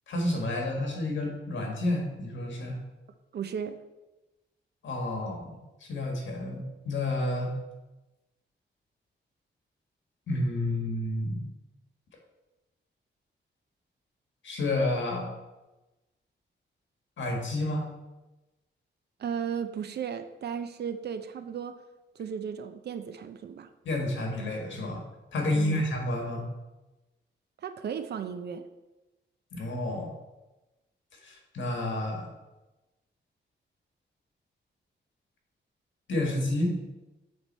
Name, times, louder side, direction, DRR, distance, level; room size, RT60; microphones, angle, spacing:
voice 1, 0.1-2.8 4.8-7.5 10.3-11.4 14.4-15.3 17.2-17.9 23.8-25.0 25.3-26.4 29.5-30.1 31.2-32.3 36.1-36.8, left 1 dB, 75° left, 1 dB, 1.6 m, -30 dB
voice 2, 3.3-3.8 19.2-21.8 22.2-23.7 25.5-25.8 27.6-28.6, right 7 dB, 60° right, 9 dB, 0.5 m, -35 dB
8.0 x 3.5 x 4.2 m, 1.1 s
wide cardioid pair, 170°, 20 cm